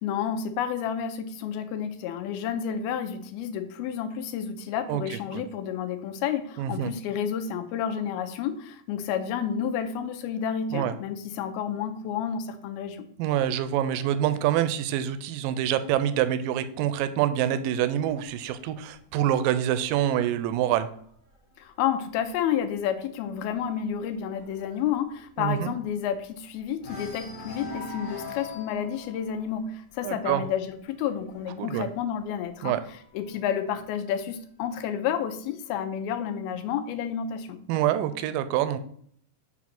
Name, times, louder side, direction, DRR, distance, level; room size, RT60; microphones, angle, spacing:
voice 1, 0.0-13.0 21.6-32.8 33.1-37.6, left 8 dB, 90° left, 9 dB, 2.7 m, -30 dB
voice 2, 4.9-5.4 6.6-6.9 10.7-10.9 13.2-20.9 25.4-25.7 30.0-30.4 31.6-31.9 32.6-32.8 37.7-38.8, right 11 dB, 80° right, 11 dB, 2.1 m, -26 dB
sound 1, 18.0-21.6 22.0-22.4 22.6-22.7 23.1-26.4 26.8-33.3 34.2-35.2, left 3 dB, 65° left, 0.4 m, -45 dB
7.4 x 3.9 x 5.9 m, 0.62 s
omnidirectional pair, 4.3 m